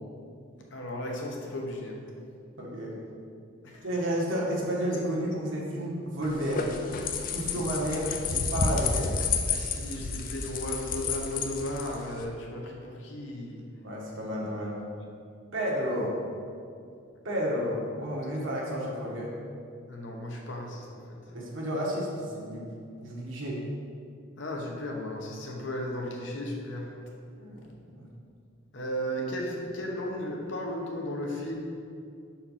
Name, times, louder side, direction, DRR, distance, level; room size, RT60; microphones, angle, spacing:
voice 1, 0.7-2.0 3.6-3.9 9.4-13.6 18.3-18.4 19.9-21.2 24.4-26.9 28.7-31.6, equal, 65° left, 0 dB, 0.9 m, -35 dB
voice 2, 2.6-3.0 3.8-6.6 7.3-9.2 13.8-14.8 15.5-16.1 17.2-19.3 21.3-22.7 23.0-23.6 27.4-27.7 28.0-28.1, equal, 70° right, -3 dB, 1.3 m, -31 dB
sound 1, 6.2-12.3, left 5 dB, 45° left, 0.5 m, -31 dB
5.0 x 4.4 x 5.6 m, 2.4 s
head